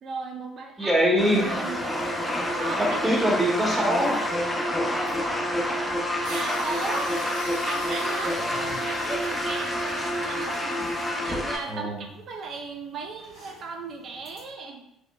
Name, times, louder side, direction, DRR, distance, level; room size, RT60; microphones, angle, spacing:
voice 1, 0.0-1.0 1.3-1.8 2.6-3.2 5.6-7.1 7.6-10.8 11.1-14.8, right 4 dB, 50° right, 2 dB, 0.5 m, -36 dB
voice 2, 0.8-1.5 2.8-4.3 8.3-8.7 11.7-12.0, equal, 10° right, -2 dB, 0.8 m, -24 dB
sound 1, 1.2-11.6, left 1 dB, 15° left, 0.5 m, -28 dB
sound 2, 1.2-14.5, right 3 dB, 75° right, 1.2 m, -44 dB
sound 3, 6.2-11.7, left 2 dB, 85° left, 0.5 m, -43 dB
2.8 x 2.1 x 2.2 m, 0.79 s
hypercardioid pair, 60°, 0 cm